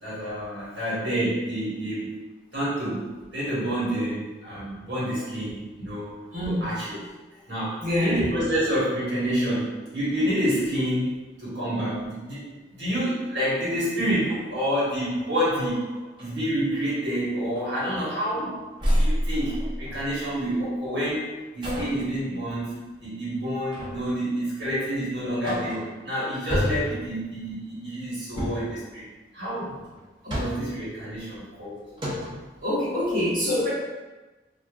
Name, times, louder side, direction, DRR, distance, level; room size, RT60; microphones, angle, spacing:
voice 1, 0.0-2.2 2.5-3.1 3.3-6.1 6.4-7.0 7.5-15.8 16.2-18.6 18.9-21.2 21.5-29.1 29.3-29.8 30.3-31.8, equal, 85° right, -9 dB, 1.3 m, -28 dB
voice 2, 6.3-6.7 7.8-8.2 30.2-30.6 32.6-33.7, left 1 dB, 50° right, -9 dB, 1.1 m, -25 dB
sound 1, 14.2-15.4 15.9-16.3 16.9-17.1 17.5-18.4 18.8-20.3 21.6-22.1 23.7-24.2 24.6-24.7 25.2-26.0 26.5-27.1 28.3-28.8 30.0-30.8 31.5-31.6 32.0-32.5, equal, 25° right, 0.5 m, -30 dB
3.2 x 2.3 x 2.4 m, 1.2 s
head